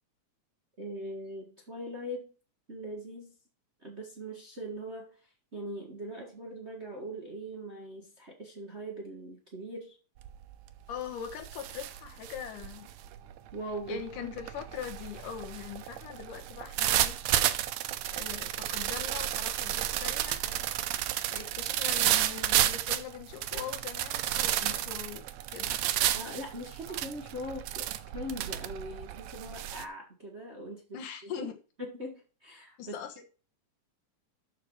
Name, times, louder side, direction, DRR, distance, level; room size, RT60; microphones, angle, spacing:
voice 1, 0.8-2.3 2.7-3.3 3.8-5.2 5.5-10.0 13.5-14.3 26.1-31.5 31.8-32.9, equal, 45° right, 0.9 m, -41 dB
sound 1, 10.2-10.5 10.9-29.8, right 13 dB, 85° right, 1.5 m, -32 dB
voice 2, 10.9-12.9 13.9-17.2 18.1-20.7 21.3-25.3 25.5-25.8 26.9-27.0 30.9-31.6 32.8-33.2, left 8 dB, 70° left, 2.9 m, -42 dB
12.5 x 5.1 x 4.6 m
omnidirectional pair, 4.0 m